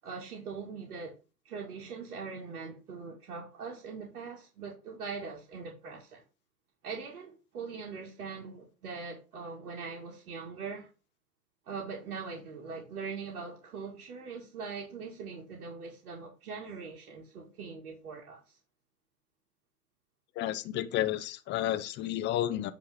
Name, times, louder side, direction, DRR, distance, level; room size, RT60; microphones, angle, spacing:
voice 1, 0.0-1.2 1.5-6.2 6.8-10.9 11.7-18.4, right 5 dB, 70° right, 1.9 m, -41 dB
voice 2, 20.4-22.7, left 13 dB, 25° left, 0.6 m, -31 dB
8.8 x 3.2 x 5.4 m
hypercardioid pair, 115°, 45 cm